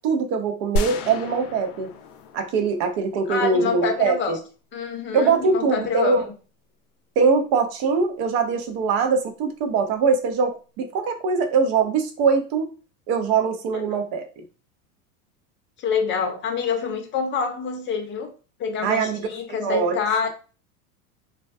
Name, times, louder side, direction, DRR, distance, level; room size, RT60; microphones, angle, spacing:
voice 1, 0.0-1.9 2.3-4.4 5.1-6.3 7.2-12.7 13.1-14.3 18.8-20.0, right 5 dB, 50° right, 7 dB, 0.6 m, -22 dB
sound 1, 0.8-3.7, left 1 dB, 90° left, 0.5 m, -31 dB
voice 2, 3.3-4.4 4.7-6.3 13.7-13.8 15.8-18.3 18.6-20.3, left 6 dB, 25° left, 4 dB, 0.6 m, -26 dB
2.3 x 2.1 x 2.5 m, 0.35 s
hypercardioid pair, 105°, 43 cm